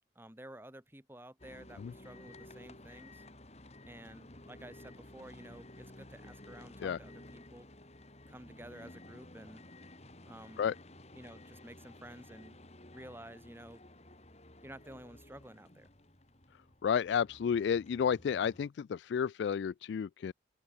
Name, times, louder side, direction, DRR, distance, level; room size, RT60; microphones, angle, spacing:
voice 1, 0.1-3.2 3.9-7.7 8.3-9.6 10.3-10.6 11.1-12.6 12.9-13.8 14.6-15.9, right 1 dB, 10° right, 2.6 m, -52 dB
sound 1, 1.4-18.7, left 1 dB, 35° left, 3.1 m, -54 dB
voice 2, 16.8-20.3, left 7 dB, 75° left, 0.3 m, -31 dB
open air
head